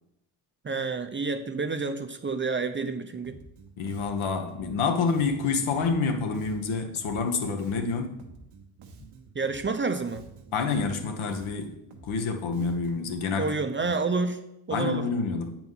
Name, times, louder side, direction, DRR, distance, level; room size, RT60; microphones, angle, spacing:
voice 1, 0.6-3.4 9.3-10.2 13.4-14.4 14.7-15.0, right 4 dB, 25° right, 8 dB, 0.6 m, -29 dB
Bass guitar, 3.2-13.1, right 4 dB, 90° right, 1.2 m, -50 dB
voice 2, 3.8-8.2 10.5-11.8 12.0-13.9 14.7-15.6, left 4 dB, 70° left, 5 dB, 1.3 m, -28 dB
7.8 x 4.5 x 5.6 m, 0.85 s
cardioid pair, 85°, 49 cm